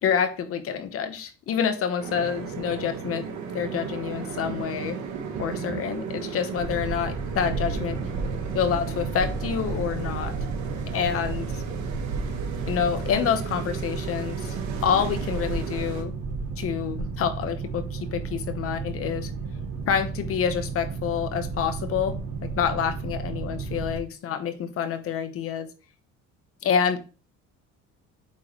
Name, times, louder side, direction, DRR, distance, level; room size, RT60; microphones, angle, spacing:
voice 1, 0.0-3.3 3.5-5.0 5.4-8.0 8.5-10.3 10.9-11.6 12.6-16.1 16.6-19.3 19.9-25.7 26.6-27.0, left 7 dB, 45° left, 0.9 m, -27 dB
sound 1, 2.0-16.0, right 6 dB, 65° right, 1.4 m, -36 dB
Boat Water vehicle, 6.6-24.0, right 4 dB, 80° right, 1.5 m, -32 dB
8.5 x 3.8 x 3.0 m
cardioid pair, 150°, 31 cm